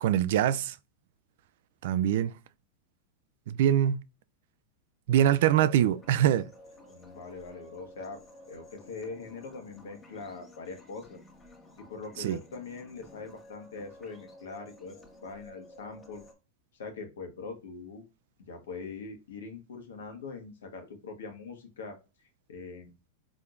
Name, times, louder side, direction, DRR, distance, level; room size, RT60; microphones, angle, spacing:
voice 1, 0.0-0.8 1.8-2.3 3.5-4.0 5.1-6.5 12.2-12.4, right 11 dB, 70° right, 0.3 m, -24 dB
sound 1, 5.1-16.3, left 1 dB, 20° left, 1.3 m, -53 dB
voice 2, 6.9-8.2 8.5-11.2 11.8-16.2 16.7-18.0 18.5-22.0 22.5-22.9, left 4 dB, 85° left, 1.3 m, -42 dB
4.4 x 3.6 x 2.5 m
hypercardioid pair, 115°, 0 cm